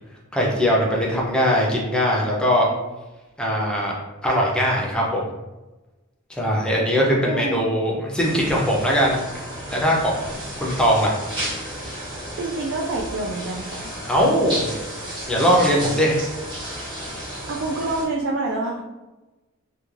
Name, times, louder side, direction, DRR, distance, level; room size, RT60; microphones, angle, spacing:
voice 1, 0.3-2.7 3.4-4.0 4.2-5.2 6.3-11.2 14.0-14.7 15.3-16.2, equal, 5° left, -3 dB, 0.4 m, -21 dB
voice 2, 7.2-7.7 12.4-13.9 17.5-18.8, right 2 dB, 55° right, -1 dB, 0.3 m, -27 dB
sound 1, 8.2-18.1, equal, 20° right, 0.8 m, -33 dB
2.3 x 2.2 x 3.1 m, 1.1 s
head